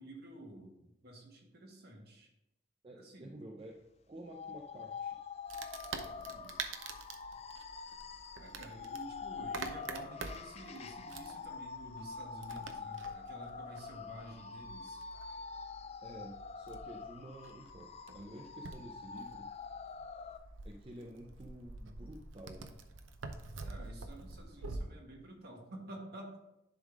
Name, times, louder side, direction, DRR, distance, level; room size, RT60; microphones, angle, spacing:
voice 1, 0.0-2.3 2.9-3.4 6.2-6.6 8.3-15.1 23.6-26.4, right 1 dB, 55° right, 0 dB, 1.5 m, -51 dB
voice 2, 2.8-5.2 16.0-19.5 20.6-22.7, right 1 dB, 30° right, 1 dB, 0.5 m, -50 dB
sound 1, 4.3-20.4, left 5 dB, 35° left, 0.4 m, -46 dB
Wood, 5.5-24.8, right 4 dB, 85° right, 0.7 m, -48 dB
10.5 x 3.7 x 3.6 m, 0.91 s
head